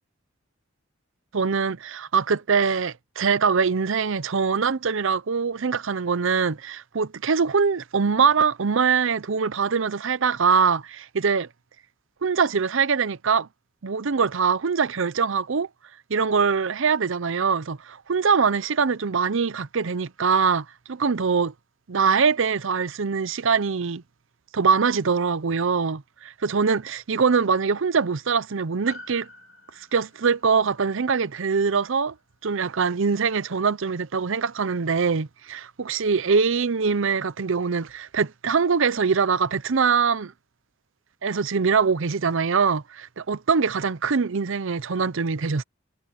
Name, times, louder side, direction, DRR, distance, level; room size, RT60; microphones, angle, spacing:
voice 1, 1.3-11.5 12.2-13.5 13.8-15.7 16.1-21.5 21.9-24.0 24.5-29.3 29.8-32.1 32.4-40.3 41.2-45.6, right 5 dB, 70° right, 0.7 m, -23 dB
Piano, 28.9-33.5 33.7-33.8, left 3 dB, 70° left, 2.6 m, -48 dB
head